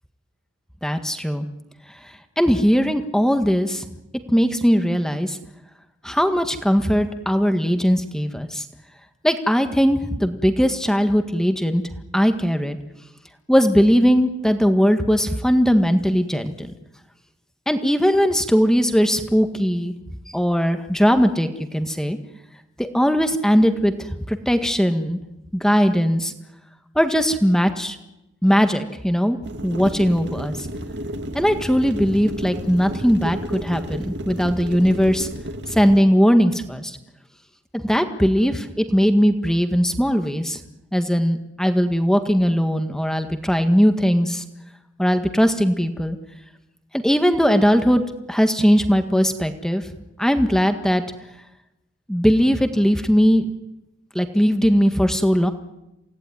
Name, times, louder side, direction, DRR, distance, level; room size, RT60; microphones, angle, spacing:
voice 1, 0.8-1.5 2.4-3.8 4.3-5.4 6.0-8.6 9.2-11.8 12.1-12.8 13.5-16.7 17.7-19.9 20.3-22.2 22.8-25.2 25.5-26.3 27.0-28.0 28.4-29.4 29.6-30.7 31.3-35.3 35.7-37.0 37.7-40.6 40.9-44.5 45.0-46.2 46.9-48.0 48.3-49.8 50.2-51.0 52.1-53.5 54.2-55.5, equal, 5° left, 7 dB, 1.6 m, -19 dB
sound 1, 29.4-36.0, equal, 60° right, 2.5 m, -32 dB
29.0 x 18.0 x 9.9 m, 0.93 s
head